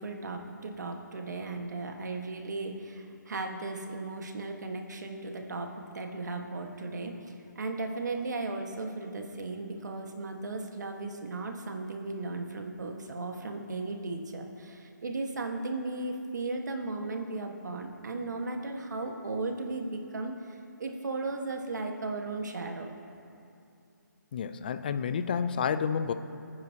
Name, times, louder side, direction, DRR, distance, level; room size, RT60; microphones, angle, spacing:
voice 1, 0.0-5.7 5.9-7.1 7.5-20.3 20.8-22.9, right 3 dB, 65° right, 3 dB, 1.5 m, -36 dB
voice 2, 24.3-26.1, left 7 dB, 30° left, 11 dB, 0.4 m, -30 dB
25.5 x 9.5 x 2.9 m, 2.5 s
hypercardioid pair, 165°, 10 cm